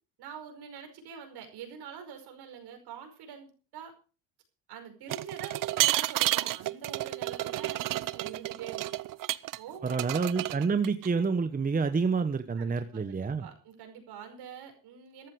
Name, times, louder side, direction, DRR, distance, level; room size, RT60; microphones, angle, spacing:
voice 1, 0.2-3.9 4.7-8.9 9.6-10.1 12.6-15.3, right 8 dB, 65° right, 5 dB, 5.3 m, -45 dB
sound 1, 5.1-9.6 9.9-11.1, right 15 dB, 50° right, 0.7 m, -31 dB
voice 2, 9.8-13.5, right 5 dB, 20° right, 10 dB, 1.1 m, -28 dB
14.0 x 11.5 x 4.8 m, 0.36 s
cardioid pair, 100°, 41 cm